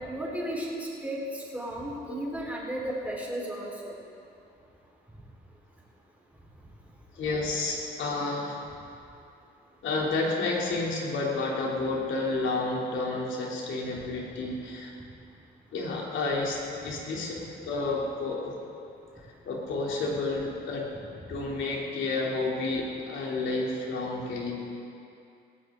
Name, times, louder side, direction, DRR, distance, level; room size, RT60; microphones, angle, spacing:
voice 1, 0.0-4.0, right 1 dB, 5° right, -5 dB, 4.5 m, -34 dB
voice 2, 7.1-8.6 9.8-14.9 15.7-18.5 19.2-20.9 21.3-24.5, left 3 dB, 75° left, -3 dB, 3.4 m, -30 dB
19.0 x 14.5 x 3.9 m, 2.6 s
cardioid pair, 90°, 20 cm